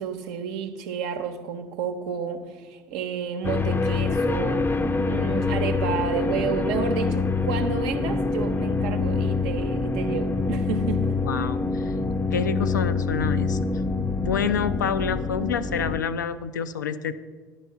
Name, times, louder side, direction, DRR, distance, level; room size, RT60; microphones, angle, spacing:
voice 1, 0.0-4.7 5.0-11.2 14.4-14.6, right 6 dB, 65° right, 6 dB, 0.8 m, -31 dB
sound 1, 3.4-16.0, left 3 dB, 20° left, 0.5 m, -25 dB
voice 2, 11.2-11.9 12.3-13.6 14.2-17.1, left 7 dB, 80° left, 11 dB, 0.4 m, -27 dB
11.0 x 4.6 x 5.5 m, 1.4 s
figure-of-eight pair, 60°, 10 cm